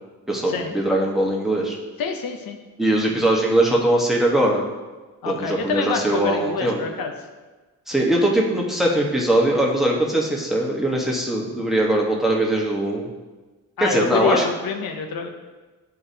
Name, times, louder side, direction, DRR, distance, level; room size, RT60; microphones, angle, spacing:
voice 1, 0.3-1.8 2.8-4.6 5.2-6.8 7.9-13.1 13.8-14.4, right 1 dB, ahead, -2 dB, 1.1 m, -21 dB
voice 2, 2.0-2.6 5.2-7.1 13.8-15.3, left 5 dB, 85° left, 4 dB, 0.7 m, -26 dB
9.5 x 3.9 x 2.7 m, 1.3 s
cardioid pair, 95°, 34 cm